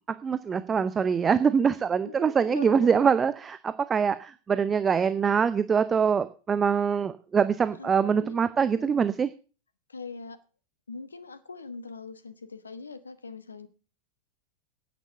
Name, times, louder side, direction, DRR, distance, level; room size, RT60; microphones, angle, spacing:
voice 1, 0.2-9.3, right 6 dB, 20° right, 13 dB, 0.7 m, -24 dB
voice 2, 2.0-3.1 7.8-8.5 8.7-9.1 9.9-10.4 10.9-13.7, left 4 dB, 75° left, 14 dB, 1.2 m, -41 dB
10.5 x 9.3 x 6.7 m, 0.36 s
figure-of-eight pair, 90°, 0 cm